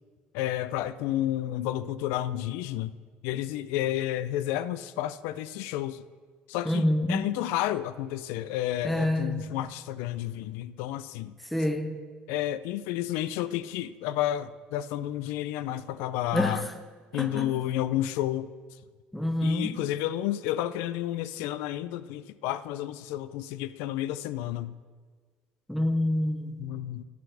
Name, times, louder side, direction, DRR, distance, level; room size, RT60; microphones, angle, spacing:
voice 1, 0.3-3.0 3.2-6.0 6.5-11.3 12.3-16.6 17.1-18.5 19.4-24.7 26.6-27.0, left 13 dB, 85° left, 0.3 m, -31 dB
voice 2, 6.6-7.3 8.8-9.6 11.5-12.0 16.3-16.6 17.1-17.5 19.1-19.8 25.7-26.6, left 1 dB, 5° left, 0.8 m, -27 dB
10.5 x 4.0 x 6.6 m
cardioid pair, 100°, 4 cm